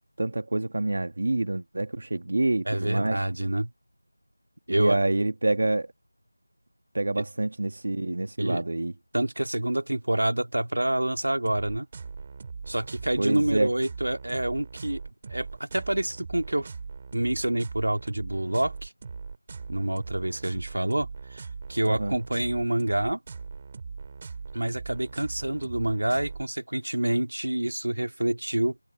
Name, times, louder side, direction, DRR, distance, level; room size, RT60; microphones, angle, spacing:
voice 1, 0.2-3.2 4.7-5.9 6.9-8.9 13.2-13.7 21.9-22.1, right 2 dB, 45° right, 1.5 m, -27 dB
voice 2, 2.7-3.7 4.7-5.0 8.4-8.6 9.1-11.9 12.7-15.0 15.3-16.7 17.1-18.9 19.7-23.2 24.5-28.8, right 1 dB, 85° right, 2.1 m, -27 dB
sound 1, 11.4-26.4, right 5 dB, 20° right, 3.2 m, -40 dB
figure-of-eight pair, 175°, 0 cm